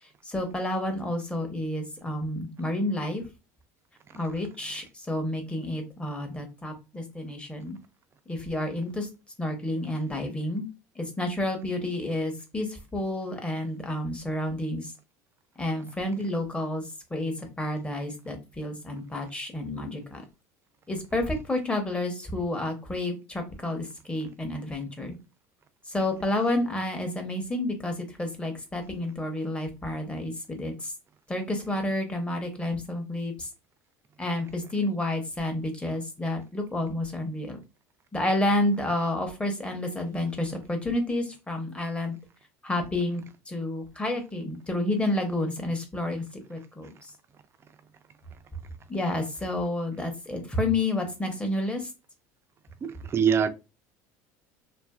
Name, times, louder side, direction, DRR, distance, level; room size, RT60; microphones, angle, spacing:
voice 1, 0.0-3.2 4.1-7.8 8.3-9.1 9.4-10.7 10.9-14.9 15.6-20.2 20.9-25.2 25.9-30.9 31.3-33.5 34.2-37.6 38.1-42.2 42.6-47.1 48.9-51.9, left 1 dB, 15° left, 0.8 m, -30 dB
voice 2, 52.8-53.5, right 7 dB, 30° right, 0.4 m, -24 dB
2.5 x 2.5 x 2.3 m
supercardioid pair, 95°, 8 cm